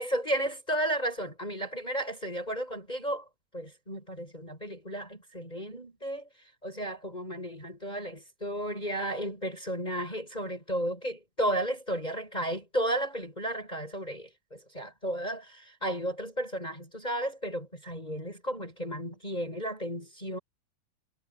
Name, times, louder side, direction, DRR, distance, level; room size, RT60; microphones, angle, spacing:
voice 1, 0.0-3.2 3.5-6.3 6.6-20.4, right 1 dB, 10° left, 7.7 m, -33 dB
omnidirectional pair, 4.2 m